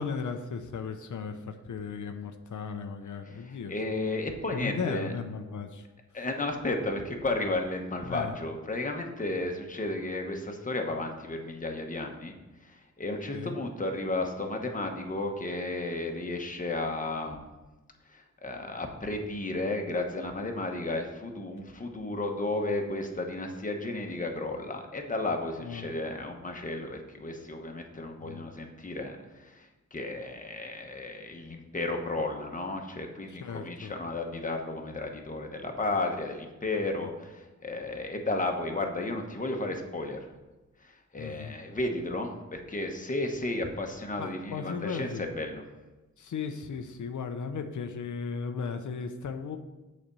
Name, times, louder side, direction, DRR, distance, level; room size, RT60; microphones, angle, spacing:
voice 1, 0.0-3.8 4.5-5.9 8.1-8.3 13.3-13.6 25.6-25.9 28.2-28.5 33.3-33.9 37.0-37.1 41.2-41.5 44.2-45.2 46.2-49.6, left 5 dB, 90° left, 7 dB, 0.6 m, -36 dB
voice 2, 3.3-5.1 6.1-12.3 12.6-17.4 18.1-40.2 40.8-45.1 45.3-45.6, left 2 dB, 25° left, 3 dB, 1.0 m, -33 dB
7.9 x 4.2 x 6.8 m, 1.1 s
wide cardioid pair, 140°, 29 cm